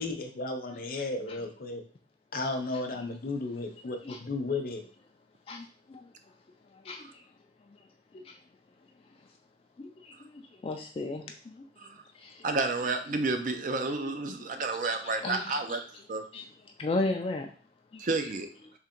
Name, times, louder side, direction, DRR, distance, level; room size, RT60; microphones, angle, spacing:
voice 1, 0.0-1.8 2.3-4.8, left 3 dB, 50° left, 4 dB, 0.7 m, -34 dB
voice 2, 5.5-6.1 6.8-7.2 8.2-8.4 9.8-11.7 12.1-12.4 14.8-15.8 16.3-16.4 16.8-17.5 17.9-18.0, left 2 dB, 35° left, 3 dB, 0.3 m, -35 dB
voice 3, 12.4-15.8 16.1-16.2 18.0-18.5, right 3 dB, 45° right, 7 dB, 0.5 m, -30 dB
3.6 x 3.0 x 4.3 m, 0.42 s
head